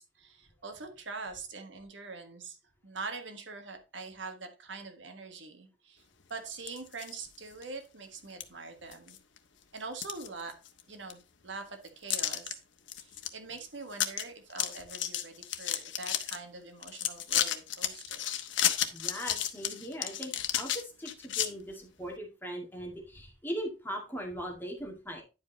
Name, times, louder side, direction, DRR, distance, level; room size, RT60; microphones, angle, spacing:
voice 1, 0.0-2.6 2.8-6.0 6.3-9.2 9.7-10.5 10.9-12.6 13.0-18.3, right 4 dB, 80° right, 6 dB, 1.6 m, -44 dB
sound 1, 6.5-7.1 7.6-7.7 8.4-8.5 8.9-9.4 9.8-10.8 11.1-11.2 12.1-12.5 12.9-13.3 13.6-13.7 13.9-14.2 14.5-16.4 16.8-21.5, left 10 dB, 80° left, 1.0 m, -32 dB
voice 2, 18.9-25.2, equal, 10° left, 1 dB, 2.1 m, -39 dB
10.5 x 5.2 x 4.0 m, 0.30 s
head